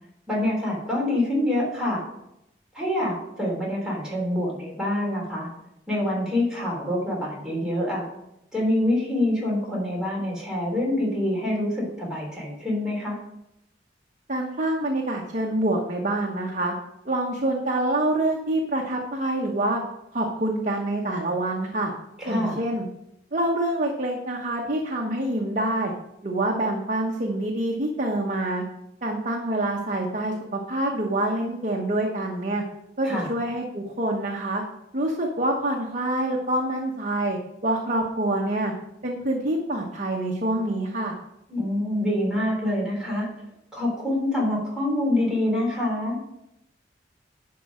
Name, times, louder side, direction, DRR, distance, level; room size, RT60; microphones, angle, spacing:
voice 1, 0.3-2.1 2.7-5.5 5.9-8.1 8.5-13.2 22.2-22.6 33.0-33.3 41.5-43.3 43.7-46.3, left 1 dB, 5° right, -4 dB, 3.5 m, -26 dB
voice 2, 14.3-16.7 17.0-19.8 20.1-21.9 22.3-22.9 23.3-25.9 26.2-28.6 29.0-32.6 33.0-34.6 34.9-37.4 37.6-38.7 39.0-41.1, right 1 dB, 40° right, -1 dB, 1.1 m, -26 dB
10.5 x 4.8 x 6.2 m, 0.82 s
head